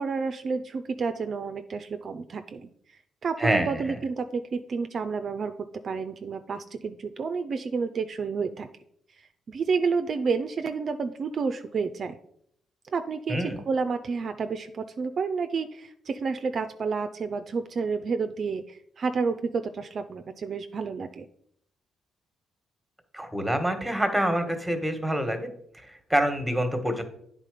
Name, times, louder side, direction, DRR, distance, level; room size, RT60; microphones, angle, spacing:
voice 1, 0.0-2.7 3.2-5.5 5.8-8.7 9.5-12.2 12.9-21.2, right 5 dB, 50° right, 9 dB, 0.4 m, -30 dB
voice 2, 3.4-3.8 13.3-13.6 23.1-25.5 25.9-27.0, equal, 5° right, 7 dB, 1.3 m, -26 dB
9.1 x 3.8 x 4.9 m, 0.70 s
cardioid pair, 90°, 0 cm